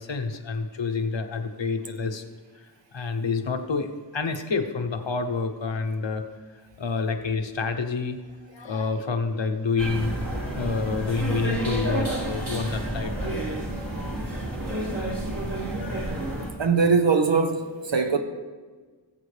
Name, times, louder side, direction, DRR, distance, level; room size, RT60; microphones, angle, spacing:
voice 1, 0.0-2.2 2.5-6.2 6.8-8.2 8.5-10.1 10.5-13.1, left 4 dB, 90° left, 1.0 m, -28 dB
sound 1, 9.8-16.5, right 1 dB, 50° right, 2.5 m, -30 dB
voice 2, 16.6-18.2, right 5 dB, 80° right, 1.1 m, -21 dB
19.0 x 7.4 x 3.4 m
wide cardioid pair, 55°, 44 cm